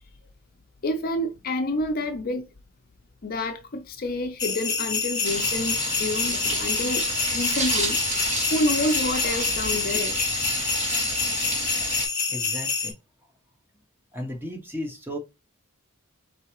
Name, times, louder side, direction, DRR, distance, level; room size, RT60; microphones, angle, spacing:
voice 1, 0.8-2.5 3.2-10.2, left 1 dB, 40° left, 0.5 m, -28 dB
sound 1, 4.4-12.9, left 5 dB, 15° left, 1.1 m, -27 dB
sound 2, 5.2-12.1, right 3 dB, 30° right, 1.1 m, -30 dB
voice 2, 12.3-12.9 14.1-15.2, equal, 10° right, 0.9 m, -34 dB
4.7 x 3.4 x 3.0 m
head